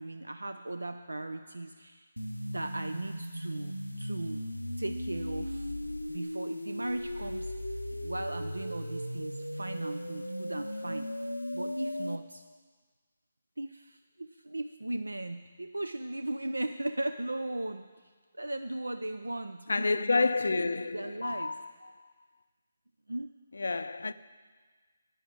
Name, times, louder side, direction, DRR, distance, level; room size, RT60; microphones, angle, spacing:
voice 1, 0.0-2.1 2.5-4.4 4.8-5.8 6.1-7.5 7.9-11.1 11.5-12.4 13.6-21.5 23.1-23.3, right 2 dB, 75° right, 0.4 m, -37 dB
sound 1, 2.2-12.2, equal, 90° left, 0.8 m, -37 dB
voice 2, 19.7-21.9 23.5-24.1, left 3 dB, 60° left, 0.5 m, -29 dB
11.0 x 9.2 x 6.1 m
figure-of-eight pair, 145°, 0 cm